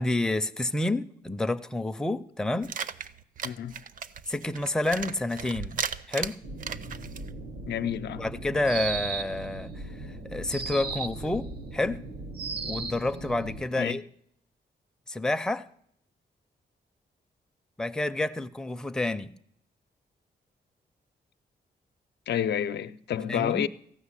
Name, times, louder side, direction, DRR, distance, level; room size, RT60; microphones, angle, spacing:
voice 1, 0.0-2.7 4.3-5.8 6.1-6.4 8.2-12.0 12.6-14.0 15.1-15.7 17.8-19.3 23.3-23.7, left 2 dB, 5° left, 0.4 m, -29 dB
sound 1, 2.6-7.3, right 6 dB, 50° right, 0.6 m, -36 dB
voice 2, 3.4-3.8 7.7-8.3 13.8-14.0 22.3-23.7, left 9 dB, 90° left, 0.6 m, -29 dB
sound 2, 6.4-13.6, right 2 dB, 90° right, 1.2 m, -41 dB
sound 3, 8.6-9.5 10.5-11.3 12.3-13.1, right 6 dB, 65° right, 0.9 m, -34 dB
15.0 x 6.4 x 9.7 m
wide cardioid pair, 170°, 17 cm